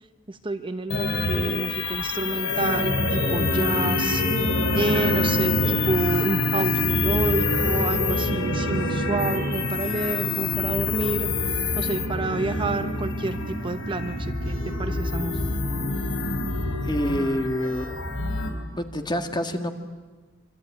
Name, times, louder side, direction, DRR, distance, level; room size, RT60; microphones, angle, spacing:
voice 1, 0.3-4.2 4.7-11.3 11.8-15.3, right 3 dB, 25° right, 8 dB, 1.0 m, -29 dB
sound 1, 0.9-18.5, left 2 dB, 85° left, 4.3 m, -25 dB
voice 2, 16.8-18.1 18.8-19.7, equal, 20° left, 7 dB, 1.9 m, -27 dB
25.5 x 25.0 x 9.2 m, 1.3 s
head